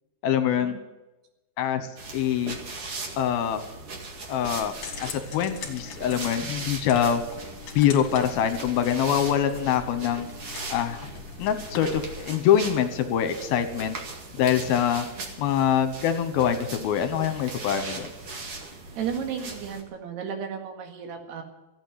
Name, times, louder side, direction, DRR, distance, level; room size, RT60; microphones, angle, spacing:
voice 1, 0.2-0.7 1.6-1.9 2.1-2.6 3.2-3.6 4.3-4.7 5.0-7.2 7.8-10.3 10.7-11.0 11.4-14.0 14.4-15.1 15.4-18.1, left 9 dB, 75° left, 10 dB, 2.8 m, -24 dB
sound 1, 2.0-19.8, right 3 dB, 45° right, 2.4 m, -39 dB
sound 2, 4.8-12.2, left 5 dB, 50° left, 3.2 m, -41 dB
voice 2, 19.0-21.4, right 7 dB, 85° right, 4 dB, 4.0 m, -33 dB
15.0 x 9.0 x 9.5 m, 1.0 s
omnidirectional pair, 4.6 m